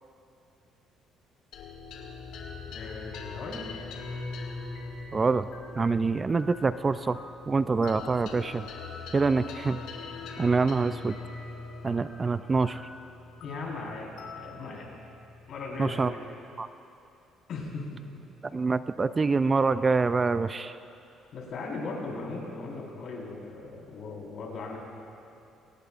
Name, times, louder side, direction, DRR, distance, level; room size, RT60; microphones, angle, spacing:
sound 1, 1.5-16.2, left 3 dB, 80° left, 2.1 m, -42 dB
voice 1, 2.7-3.7 13.4-14.9 15.5-16.2 17.5-18.0 21.3-24.8, left 3 dB, 60° left, -3 dB, 4.2 m, -38 dB
voice 2, 5.1-5.5 5.8-7.2 7.5-8.7 9.1-9.8 10.4-11.1 11.8-12.8 15.8-16.1 16.6-16.7 18.5-20.7, right 4 dB, 25° right, 12 dB, 0.3 m, -25 dB
24.5 x 18.5 x 2.5 m, 2.8 s
cardioid pair, 125°, 0 cm